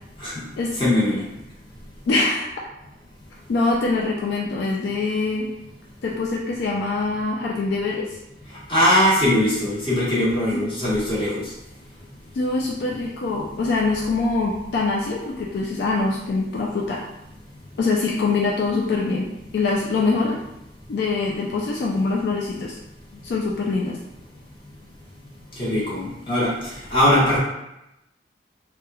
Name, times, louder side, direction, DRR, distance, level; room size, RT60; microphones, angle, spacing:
voice 1, 0.8-1.2 8.7-11.4 25.6-26.5 26.9-27.4, left 1 dB, 30° left, -9 dB, 1.0 m, -20 dB
voice 2, 2.1-2.5 3.5-5.5 6.0-8.1 10.5-10.7 12.3-17.0 17.8-20.4 20.9-22.8 23.2-24.0, left 3 dB, 70° left, -2 dB, 0.3 m, -24 dB
2.9 x 2.1 x 2.3 m, 0.88 s
head